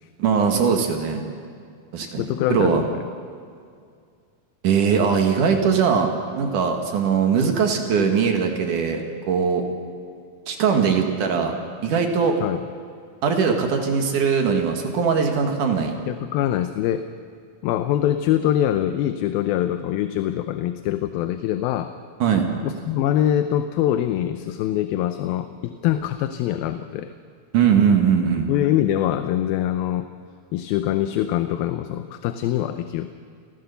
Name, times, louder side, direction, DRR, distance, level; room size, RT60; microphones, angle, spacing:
voice 1, 0.2-1.2 1.9-2.2 2.5-2.8 4.6-6.1 6.4-9.0 9.3-9.6 10.5-11.6 11.8-12.4 13.2-15.9 22.2-22.5 27.5-28.5, right 6 dB, 60° right, 4 dB, 3.0 m, -20 dB
voice 2, 2.2-3.0 12.4-12.6 16.1-17.1 17.6-21.9 22.6-27.1 28.5-30.1 30.5-33.2, left 12 dB, 80° left, 9 dB, 2.5 m, -23 dB
29.0 x 15.5 x 6.9 m, 2.2 s
omnidirectional pair, 4.3 m